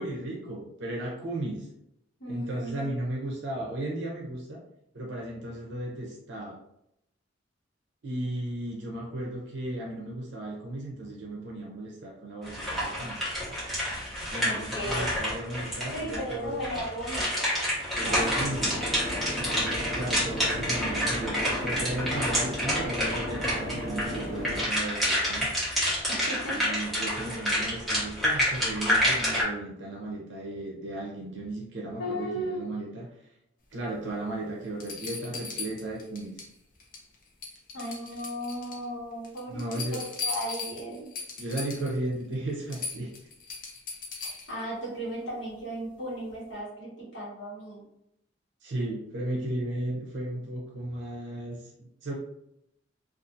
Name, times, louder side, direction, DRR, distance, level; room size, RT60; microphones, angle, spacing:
voice 1, 0.0-1.7 2.3-4.6 4.9-6.6 8.0-13.2 14.3-16.6 18.0-18.8 19.4-25.5 26.5-33.1 33.7-36.3 39.5-40.0 41.4-43.1 48.6-52.1, right 1 dB, 65° right, -2 dB, 0.6 m, -35 dB
voice 2, 2.2-2.9 14.4-15.1 15.9-17.5 26.1-26.7 32.0-32.6 37.7-41.1 44.2-47.9, equal, 75° left, -4 dB, 1.1 m, -36 dB
sound 1, 12.5-16.3 16.6-29.4, equal, ahead, 1.1 m, -28 dB
sound 2, 18.0-24.7, equal, 40° right, 0.9 m, -35 dB
sound 3, 34.1-34.2 34.8-36.5 36.8-37.1 37.4-38.8 39.2-42.0 42.3-42.4 42.7-44.6 46.3-46.4, left 4 dB, 45° left, 0.6 m, -38 dB
2.6 x 2.4 x 2.5 m, 0.79 s
head